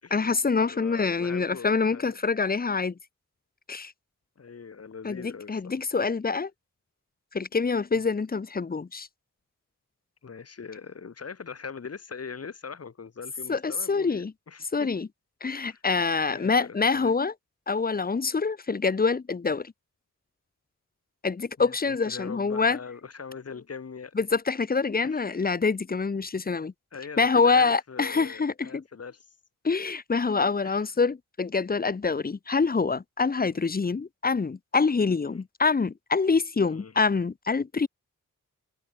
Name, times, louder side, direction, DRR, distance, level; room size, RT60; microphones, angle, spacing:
voice 1, 0.1-2.9 3.7-3.9 5.0-6.5 7.3-9.1 13.5-14.3 14.7-15.1 15.4-17.3 17.7-19.7 21.2-22.8 24.2-26.7 27.2-28.8 29.6-37.9, left 4 dB, 30° left, 0.9 m, -26 dB
voice 2, 0.7-2.2 4.4-5.8 7.9-8.1 10.2-14.9 15.4-15.8 16.3-17.1 21.6-24.1 25.0-25.3 26.9-29.3 30.6-30.9 33.5-33.6 36.7-36.9, left 5 dB, 50° left, 4.2 m, -41 dB
wide cardioid pair, 165°, 32 cm